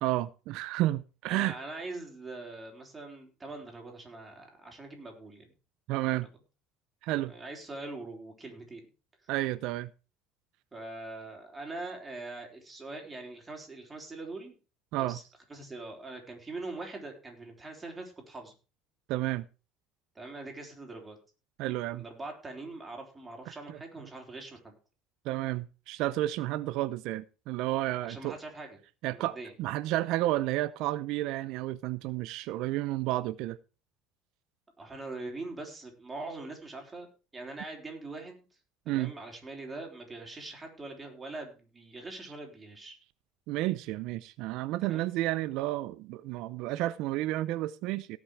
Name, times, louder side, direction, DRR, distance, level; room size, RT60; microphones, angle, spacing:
voice 1, 0.0-1.6 5.9-6.3 7.0-7.3 9.3-9.9 14.9-15.2 19.1-19.4 21.6-22.0 23.7-23.8 25.2-28.3 29.0-33.6 38.9-39.1 43.5-48.2, right 16 dB, 65° right, 0.6 m, -31 dB
voice 2, 1.3-5.5 7.2-8.8 9.2-9.3 10.7-14.6 15.0-15.2 15.5-18.5 20.1-21.2 21.9-24.8 28.0-28.8 29.1-29.5 34.8-37.1 37.3-38.5 38.9-43.0 44.8-45.1, right 2 dB, 15° right, 4.0 m, -42 dB
17.5 x 6.1 x 4.9 m
cardioid pair, 130°, 0 cm